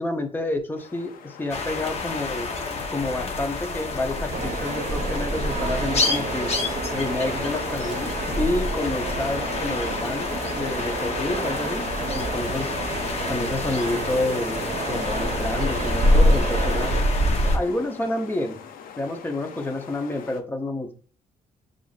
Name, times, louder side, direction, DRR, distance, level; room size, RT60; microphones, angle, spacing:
voice 1, 0.0-2.5 2.9-6.6 6.9-11.8 12.1-12.8 13.3-16.9 17.4-18.6 19.0-20.9, left 2 dB, 15° left, 4 dB, 0.8 m, -29 dB
sound 1, 0.8-20.4, left 8 dB, 90° left, 0.5 m, -45 dB
sound 2, 1.5-17.6, left 2 dB, 50° left, 0.8 m, -26 dB
sound 3, 4.3-17.0, right 4 dB, 55° right, 0.8 m, -32 dB
6.8 x 2.6 x 2.4 m, 0.41 s
cardioid pair, 120°, 14 cm